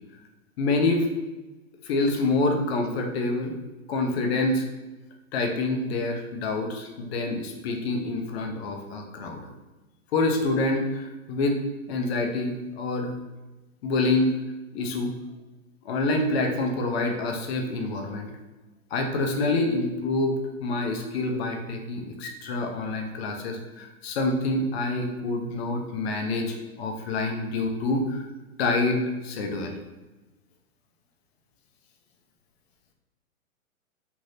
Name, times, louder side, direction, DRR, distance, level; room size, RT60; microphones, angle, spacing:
voice 1, 0.6-1.1 1.8-3.6 3.9-4.6 5.3-9.4 10.1-11.6 11.9-13.1 13.8-14.3 14.7-15.1 15.8-18.3 18.9-28.3 28.6-29.7, left 2 dB, 50° left, 2 dB, 0.6 m, -27 dB
3.2 x 2.7 x 2.6 m, 1.1 s
hypercardioid pair, 135°, 42 cm